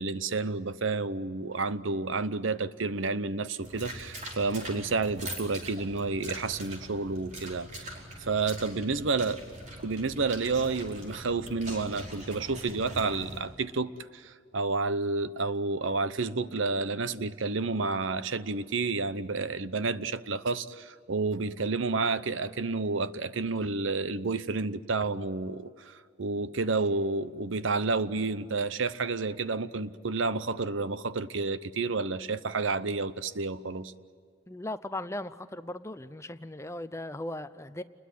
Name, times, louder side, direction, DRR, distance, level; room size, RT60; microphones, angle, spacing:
voice 1, 0.0-7.9 8.2-9.4 9.8-33.9, right 3 dB, 70° right, 15 dB, 0.8 m, -30 dB
sound 1, 3.6-13.4, right 1 dB, 35° right, 4.8 m, -42 dB
voice 2, 34.5-37.8, left 1 dB, 15° left, 12 dB, 0.6 m, -38 dB
29.0 x 21.5 x 9.3 m, 2.1 s
head